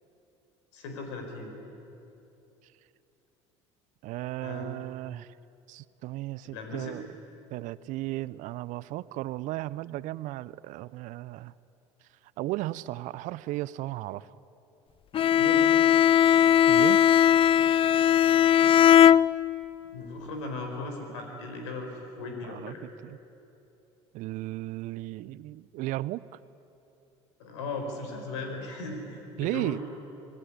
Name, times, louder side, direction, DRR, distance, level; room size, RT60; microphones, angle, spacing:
voice 1, 0.7-1.5 4.4-4.7 6.5-6.9 15.3-15.7 19.9-22.8 27.4-29.8, left 2 dB, 75° left, 3 dB, 4.7 m, -37 dB
voice 2, 4.0-5.3 5.7-7.1 7.5-11.5 12.4-14.4 16.7-17.1 22.4-23.2 24.1-26.2 29.4-29.8, right 17 dB, 60° right, 19 dB, 0.6 m, -35 dB
Bowed string instrument, 15.1-19.8, left 10 dB, 35° left, 0.5 m, -19 dB
25.5 x 17.5 x 10.0 m, 2.9 s
hypercardioid pair, 65°, 15 cm